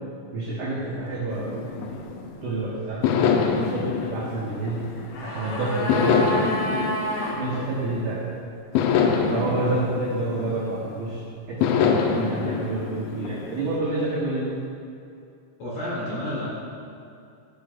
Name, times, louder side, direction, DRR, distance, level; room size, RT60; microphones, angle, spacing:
voice 1, 0.3-2.0 2.4-4.8 5.2-6.6 7.4-8.3 9.0-14.5, right 2 dB, 80° right, -5 dB, 1.8 m, -29 dB
sound 1, 1.3-2.4 3.0-5.3 5.9-8.2 8.8-11.0 11.6-13.8, left 6 dB, 90° left, 3.0 m, -25 dB
sound 2, 4.8-7.4 7.7-7.8, right 1 dB, 60° left, 1.6 m, -29 dB
voice 2, 15.6-16.5, left 1 dB, 40° left, -7 dB, 2.7 m, -30 dB
16.0 x 10.5 x 2.4 m, 2.5 s
omnidirectional pair, 5.4 m